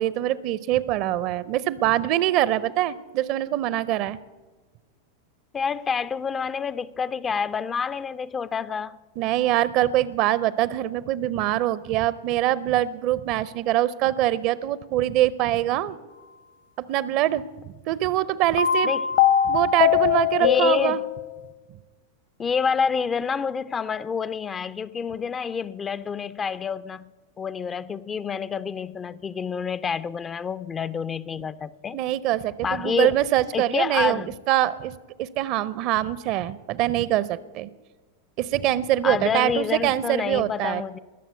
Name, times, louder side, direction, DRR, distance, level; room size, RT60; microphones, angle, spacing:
voice 1, 0.0-4.2 9.2-16.0 16.9-18.9 19.5-21.0 31.9-34.2 34.5-34.9 35.2-37.7 38.4-40.8, right 14 dB, 40° right, 19 dB, 0.6 m, -24 dB
voice 2, 5.5-9.0 18.8-19.1 20.4-21.0 22.4-27.1 27.4-32.0 32.6-33.2 33.5-34.3 39.0-41.0, left 6 dB, 20° left, 16 dB, 0.4 m, -28 dB
sound 1, 18.6-21.4, left 10 dB, 60° left, 1.0 m, -21 dB
20.5 x 7.3 x 8.2 m, 1.3 s
figure-of-eight pair, 90°, 0 cm